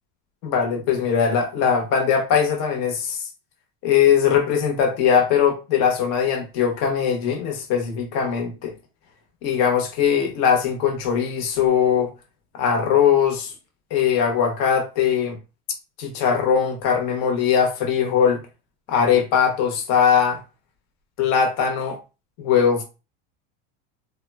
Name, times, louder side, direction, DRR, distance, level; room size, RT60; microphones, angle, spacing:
voice 1, 0.4-3.2 3.8-8.7 9.4-12.1 12.5-13.5 13.9-15.4 16.0-18.4 18.9-20.4 21.2-22.0 22.4-22.8, left 7 dB, 45° left, 0.8 m, -20 dB
3.5 x 2.0 x 2.2 m
cardioid pair, 165°, 35 cm